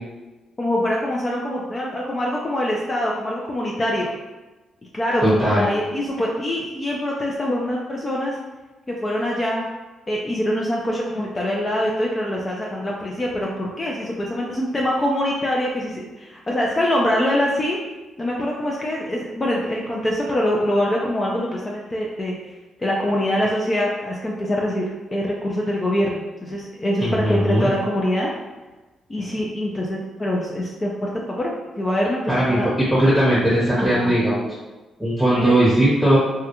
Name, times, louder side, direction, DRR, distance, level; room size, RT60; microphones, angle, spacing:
voice 1, 0.6-4.1 4.9-8.4 8.9-9.7 10.1-17.8 18.2-22.3 22.8-24.8 25.1-28.3 29.1-31.5 31.8-32.7 33.8-34.2 35.3-35.5, left 1 dB, 30° left, -3 dB, 0.4 m, -24 dB
voice 2, 5.2-5.7 27.0-27.7 32.3-32.6 32.9-34.4 35.0-36.2, right 1 dB, ahead, -8 dB, 0.9 m, -18 dB
2.2 x 2.2 x 2.9 m, 1.2 s
supercardioid pair, 60°, 0 cm